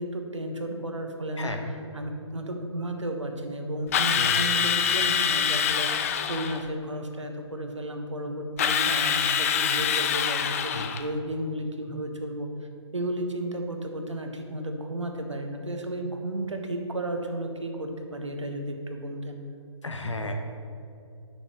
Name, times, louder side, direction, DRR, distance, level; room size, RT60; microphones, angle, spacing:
voice 1, 0.0-1.6 1.9-5.9 6.3-12.5 12.9-19.4, right 1 dB, 80° right, 4 dB, 1.0 m, -33 dB
Drill, 3.9-6.6 8.6-11.1, left 8 dB, 30° left, 0.4 m, -25 dB
voice 2, 19.8-20.3, left 2 dB, 75° left, 4 dB, 1.0 m, -33 dB
10.5 x 6.4 x 3.0 m, 2.6 s
figure-of-eight pair, 135°, 15 cm